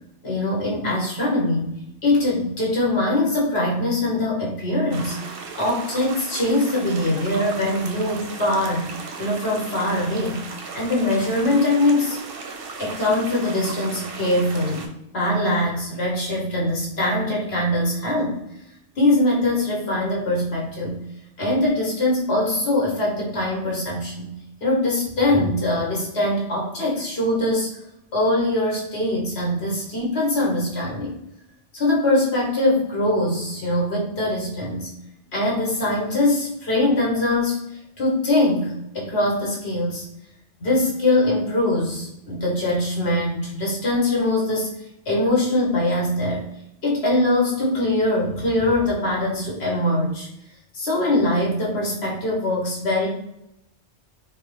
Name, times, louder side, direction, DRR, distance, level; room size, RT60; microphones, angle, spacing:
voice 1, 0.2-8.9 9.2-12.2 12.8-18.4 19.0-21.0 21.4-24.3 24.6-27.7 28.1-31.1 31.7-34.9 35.3-37.6 38.0-40.1 40.6-46.5 46.8-50.3 50.7-53.1, left 1 dB, 65° left, -4 dB, 1.4 m, -22 dB
sound 1, 4.9-14.9, right 4 dB, 60° right, 0.7 m, -36 dB
3.9 x 2.0 x 3.1 m, 0.83 s
omnidirectional pair, 1.2 m